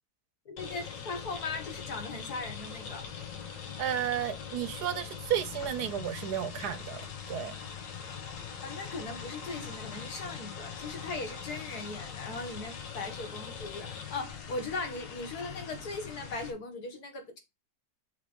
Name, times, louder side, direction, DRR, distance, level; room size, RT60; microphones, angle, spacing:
voice 1, 0.5-3.1 8.6-17.4, left 3 dB, 60° left, 2.0 m, -39 dB
sound 1, 0.6-16.5, left 7 dB, 80° left, 1.9 m, -42 dB
voice 2, 3.8-7.0 7.3-7.5, right 10 dB, 70° right, 1.1 m, -32 dB
6.7 x 3.7 x 5.0 m
omnidirectional pair, 1.9 m